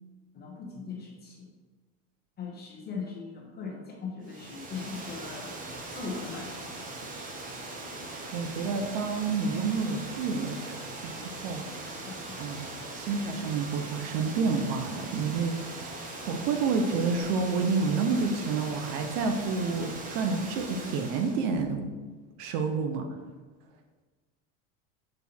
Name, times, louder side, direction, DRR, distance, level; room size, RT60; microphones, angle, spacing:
voice 1, 0.3-1.5 2.4-5.5 5.9-6.7 12.1-12.4, left 5 dB, 25° left, -1 dB, 1.3 m, -39 dB
Water, 4.2-21.4, right 2 dB, 20° right, 0.9 m, -40 dB
voice 2, 8.3-11.6 12.4-12.7 12.9-15.8 16.3-21.9 22.4-23.1, right 4 dB, 60° right, 5 dB, 0.9 m, -29 dB
6.7 x 3.6 x 4.3 m, 1.4 s
supercardioid pair, 140°, 37 cm